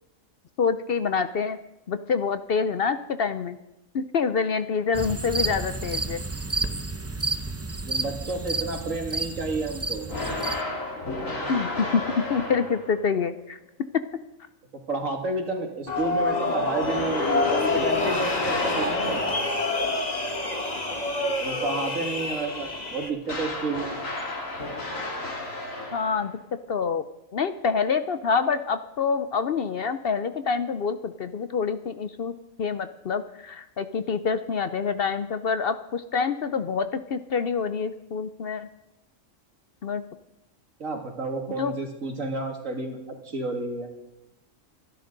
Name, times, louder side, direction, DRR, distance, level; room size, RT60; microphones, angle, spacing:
voice 1, 0.6-1.6 1.9-3.6 3.9-6.2 11.5-13.6 25.9-26.4 26.7-27.0 27.3-32.3 32.6-38.7 39.8-40.0 41.5-41.7, left 5 dB, 55° left, 11 dB, 0.8 m, -26 dB
sound 1, 4.9-10.6, right 3 dB, 20° right, 0.4 m, -31 dB
voice 2, 7.9-10.1 14.9-19.2 21.4-24.0 40.8-43.0 43.2-43.9, right 3 dB, 80° right, 2 dB, 2.7 m, -31 dB
sound 2, 10.1-13.1 16.8-19.7 23.2-26.3, left 2 dB, 85° left, 2.9 m, -32 dB
sound 3, 15.9-23.1, left 3 dB, 30° left, 1.5 m, -27 dB
26.0 x 11.0 x 3.9 m, 0.93 s
omnidirectional pair, 1.4 m